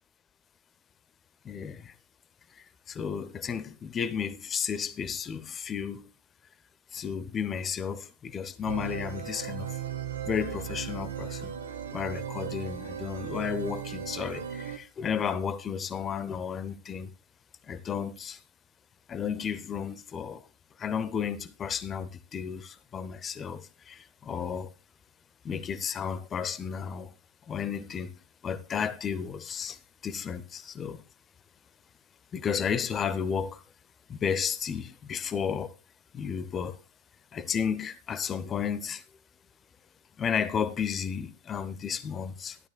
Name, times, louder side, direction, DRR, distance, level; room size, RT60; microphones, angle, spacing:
voice 1, 1.4-1.9 2.5-6.1 6.9-9.8 10.2-11.5 11.9-17.1 17.6-18.4 19.1-20.5 20.8-24.7 25.4-27.1 27.5-31.0 32.3-33.6 34.1-35.7 36.1-36.8 37.3-39.0 40.2-42.6, left 7 dB, 25° left, 0.7 m, -33 dB
sound 1, 8.7-14.8, right 8 dB, 65° right, 1.2 m, -37 dB
12.5 x 12.0 x 2.3 m
figure-of-eight pair, 90°, 0 cm